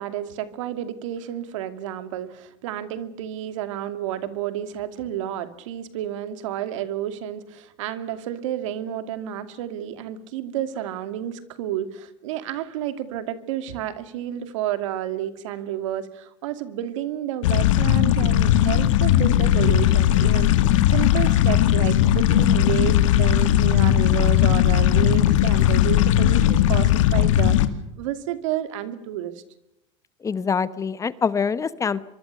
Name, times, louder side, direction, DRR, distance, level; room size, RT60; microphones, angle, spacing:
voice 1, 0.0-20.5 20.9-27.6 28.0-29.4, right 11 dB, 85° right, 10 dB, 2.5 m, -30 dB
sound 1, 17.4-27.7, left 12 dB, 90° left, 2.0 m, -18 dB
voice 2, 30.2-32.0, left 6 dB, 20° left, 15 dB, 1.1 m, -24 dB
24.5 x 24.0 x 6.8 m, 0.84 s
supercardioid pair, 125°, 16 cm